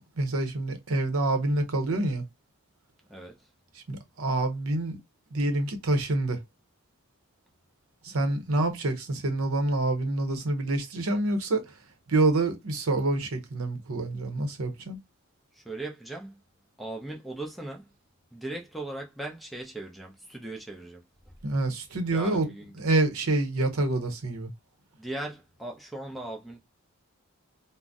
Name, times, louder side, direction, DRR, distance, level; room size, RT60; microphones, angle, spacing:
voice 1, 0.2-2.3 3.7-5.0 5.3-6.4 8.0-11.8 12.1-15.0 21.4-22.5 22.8-24.5, right 2 dB, 80° right, 0.7 m, -27 dB
voice 2, 15.5-16.4 16.8-17.9 18.3-21.0 22.1-22.7 25.0-26.6, right 2 dB, ahead, 0.5 m, -38 dB
2.5 x 2.0 x 3.4 m
head